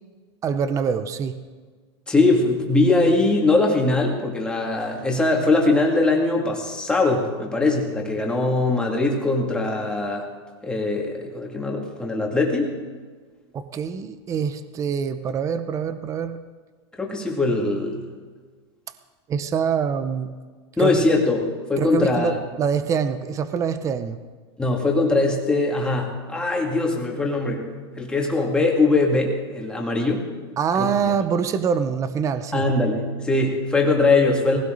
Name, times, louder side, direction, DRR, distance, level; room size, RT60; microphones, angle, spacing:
voice 1, 0.4-1.4 13.5-16.4 19.3-20.3 20.8-21.0 21.8-24.2 30.6-32.7, right 6 dB, 20° right, 11 dB, 0.7 m, -25 dB
voice 2, 2.1-10.3 10.6-12.7 17.0-18.0 20.8-22.4 24.6-27.6 28.0-30.3 30.8-30.9 32.5-34.6, left 2 dB, 5° left, -1 dB, 2.4 m, -21 dB
19.0 x 16.5 x 4.0 m, 1.5 s
supercardioid pair, 145°, 15 cm